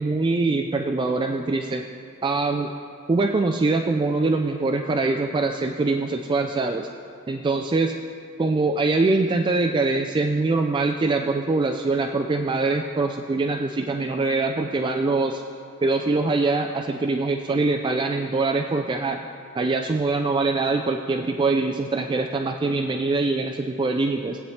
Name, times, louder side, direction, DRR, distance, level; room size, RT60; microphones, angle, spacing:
voice 1, 0.0-1.9 2.2-2.7 3.1-6.9 7.3-7.9 8.4-15.4 15.8-19.2 19.6-24.4, right 3 dB, 20° right, 4 dB, 0.3 m, -23 dB
16.0 x 8.6 x 3.2 m, 2.5 s
head